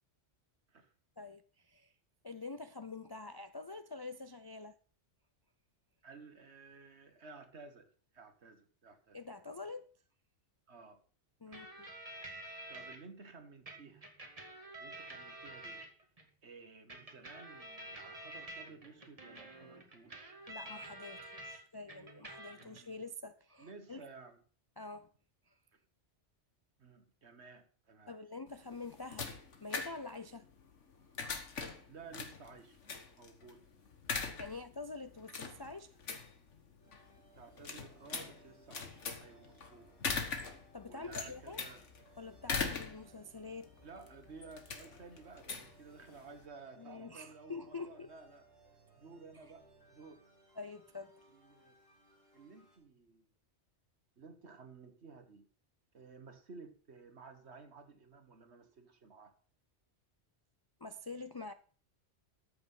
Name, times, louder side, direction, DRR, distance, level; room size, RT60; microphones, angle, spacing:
voice 1, 1.2-1.9 2.2-4.8 9.1-9.9 11.4-11.9 20.5-24.1 24.8-25.1 25.5-25.6 28.1-29.3 29.6-30.5 34.4-36.0 40.7-41.6 42.2-43.7 46.8-48.1 50.6-51.2 60.8-61.5, left 3 dB, 40° left, 0.3 m, -46 dB
voice 2, 6.0-7.9 8.1-9.2 10.7-11.0 11.4-11.7 12.7-14.1 14.8-15.8 16.4-20.4 22.5-23.0 23.6-24.4 26.8-28.2 31.9-32.8 33.2-33.6 34.5-34.6 37.4-39.9 40.8-41.8 43.8-48.4 48.9-49.6 49.9-50.2 51.3-51.8 52.3-53.3 54.2-55.5 55.9-59.3, right 4 dB, 65° right, 1.8 m, -54 dB
sound 1, 11.5-13.0 13.7-16.2 16.9-21.6 21.9-22.8, right 1 dB, 30° right, 2.0 m, -49 dB
sound 2, 28.5-46.4, left 5 dB, 80° left, 1.8 m, -42 dB
sound 3, 36.8-52.8, right 3 dB, 20° left, 4.5 m, -65 dB
13.5 x 6.8 x 5.6 m
omnidirectional pair, 1.2 m